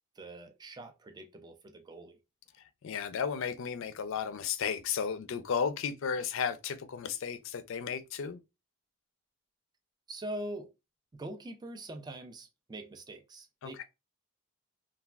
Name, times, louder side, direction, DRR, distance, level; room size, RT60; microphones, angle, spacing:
voice 1, 0.2-2.2 10.1-10.7 11.2-13.8, right 1 dB, 20° right, 0.4 m, -43 dB
voice 2, 2.8-8.4 13.6-13.8, left 6 dB, 65° left, 0.4 m, -34 dB
3.3 x 2.3 x 2.3 m
head